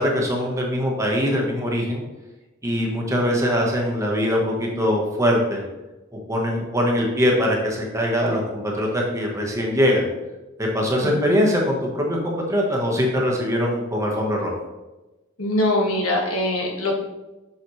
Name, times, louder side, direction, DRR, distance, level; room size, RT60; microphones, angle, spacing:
voice 1, 0.0-2.0 2.6-5.6 6.3-10.1 10.6-14.5, equal, 15° right, -1 dB, 1.2 m, -22 dB
voice 2, 11.0-11.4 15.4-17.0, left 1 dB, 75° left, -1 dB, 1.6 m, -23 dB
7.2 x 6.2 x 3.2 m, 1.1 s
head